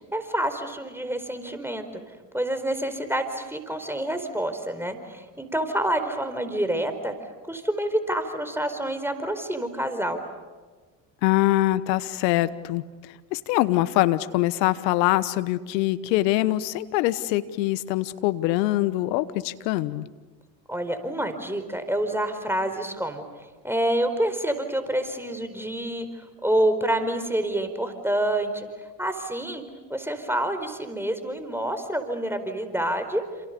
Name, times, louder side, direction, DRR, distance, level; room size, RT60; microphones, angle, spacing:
voice 1, 0.1-1.9 2.3-7.1 7.5-10.2 20.7-23.2 23.6-26.1 26.4-28.7 29.0-29.6 29.9-33.2, right 1 dB, 5° right, 8 dB, 4.5 m, -27 dB
voice 2, 11.2-12.8 13.3-20.1, left 17 dB, 80° left, 15 dB, 1.3 m, -23 dB
29.5 x 28.0 x 6.9 m, 1.3 s
hypercardioid pair, 60°, 50 cm